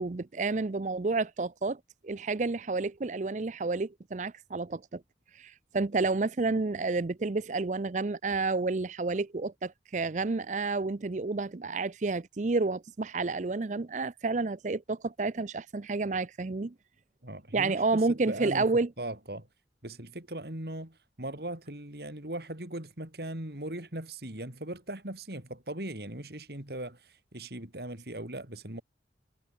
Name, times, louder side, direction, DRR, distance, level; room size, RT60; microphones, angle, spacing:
voice 1, 0.0-5.0 5.4-16.7 17.5-18.9, right 3 dB, 45° right, 0.5 m, -30 dB
voice 2, 17.2-18.7 19.0-19.5 19.8-28.8, right 1 dB, 65° right, 3.9 m, -39 dB
head